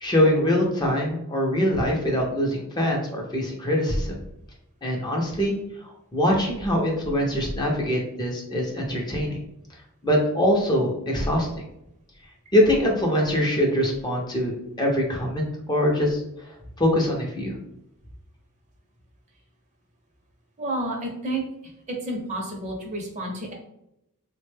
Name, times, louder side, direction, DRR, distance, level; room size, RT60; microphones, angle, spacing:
voice 1, 0.0-4.1 4.8-9.4 10.0-11.6 12.5-17.6, equal, 20° left, -1 dB, 0.5 m, -23 dB
voice 2, 20.6-21.5 21.9-23.5, right 1 dB, 30° right, 1 dB, 0.6 m, -30 dB
3.4 x 2.1 x 3.2 m, 0.81 s
head